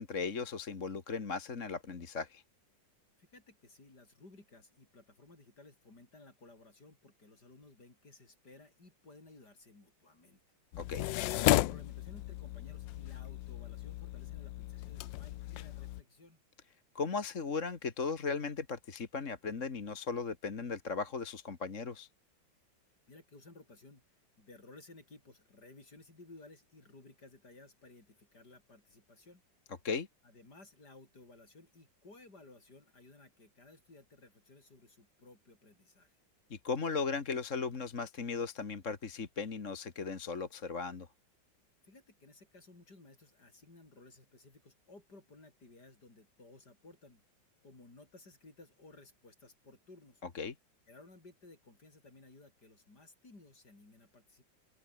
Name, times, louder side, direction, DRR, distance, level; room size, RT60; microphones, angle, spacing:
voice 1, 0.0-2.4 10.8-11.1 17.0-22.1 29.8-30.1 36.5-41.1 50.3-50.5, left 4 dB, 40° left, 2.1 m, -37 dB
voice 2, 3.2-10.4 11.4-16.4 23.1-24.0 24.4-29.4 30.2-36.2 41.8-47.2 47.6-50.2 50.9-54.4, left 2 dB, 60° left, 6.3 m, -57 dB
sound 1, 10.7-16.0, left 16 dB, 80° left, 1.3 m, -34 dB
omnidirectional pair, 2.0 m